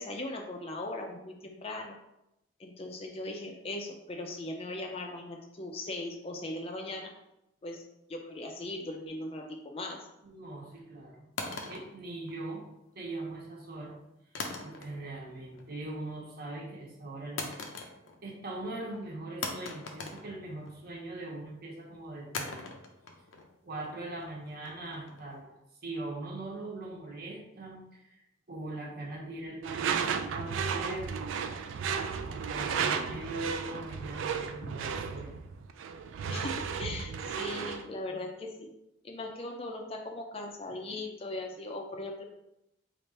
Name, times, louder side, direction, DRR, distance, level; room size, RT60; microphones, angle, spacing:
voice 1, 0.0-1.9 2.6-7.1 7.6-7.8 8.1-10.1 36.3-38.7 39.0-42.2, left 2 dB, 30° left, 2 dB, 0.4 m, -39 dB
voice 2, 10.2-11.2 11.5-12.6 12.9-13.9 14.6-17.4 18.2-22.6 23.6-25.5 25.8-31.3 32.2-35.5, right 2 dB, 50° right, -2 dB, 0.9 m, -41 dB
sound 1, 11.4-12.8 14.4-15.2 15.5-16.0 17.4-18.3 18.6-18.7 19.4-20.9 22.3-25.4, left 3 dB, 85° left, 0.5 m, -41 dB
Door / Screech, 29.6-37.9, right 6 dB, 75° right, 0.3 m, -34 dB
3.3 x 2.4 x 4.2 m, 0.86 s
head